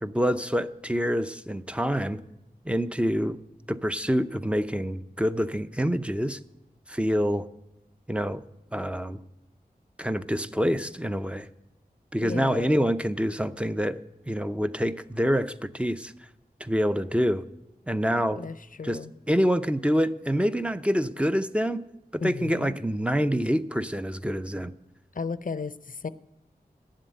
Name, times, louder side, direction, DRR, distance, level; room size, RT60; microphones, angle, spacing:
voice 1, 0.0-2.2 2.7-3.4 3.7-6.4 6.9-7.5 8.1-8.4 8.7-9.2 10.0-11.5 12.1-14.0 14.3-16.1 16.6-17.4 17.9-18.4 18.8-19.0 19.3-21.8 22.1-24.7, equal, 5° right, 11 dB, 0.6 m, -26 dB
voice 2, 12.2-12.9 18.3-19.1 22.2-22.8 25.1-26.1, left 5 dB, 55° left, 16 dB, 0.6 m, -34 dB
10.0 x 7.6 x 9.4 m, 0.94 s
wide cardioid pair, 50°, 16 cm